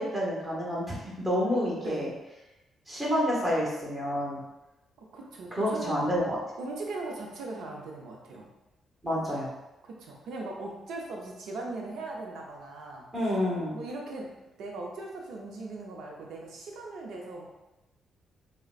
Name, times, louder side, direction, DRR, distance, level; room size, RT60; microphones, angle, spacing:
voice 1, 0.0-2.1 2.9-4.4 5.5-6.4 9.0-9.5 13.1-13.8, equal, 15° right, -5 dB, 1.0 m, -29 dB
voice 2, 5.0-6.0 6.6-8.5 9.8-13.1 13.7-14.3 14.6-17.5, right 2 dB, 80° right, -1 dB, 0.6 m, -39 dB
3.7 x 2.1 x 2.5 m, 1.0 s
cardioid pair, 100°, 0 cm